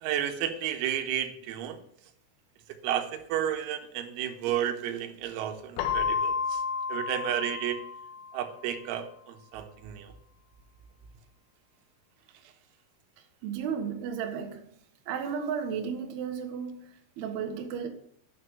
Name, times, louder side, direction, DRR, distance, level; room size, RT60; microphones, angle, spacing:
voice 1, 0.0-1.8 2.8-6.6 6.9-7.8 8.3-10.1, right 10 dB, 90° right, 3.9 m, -32 dB
Keyboard (musical), 5.8-8.5, left 6 dB, 75° left, 3.2 m, -31 dB
voice 2, 13.4-14.7 15.1-17.9, right 7 dB, 65° right, 2.9 m, -34 dB
10.5 x 6.6 x 9.0 m
omnidirectional pair, 6.0 m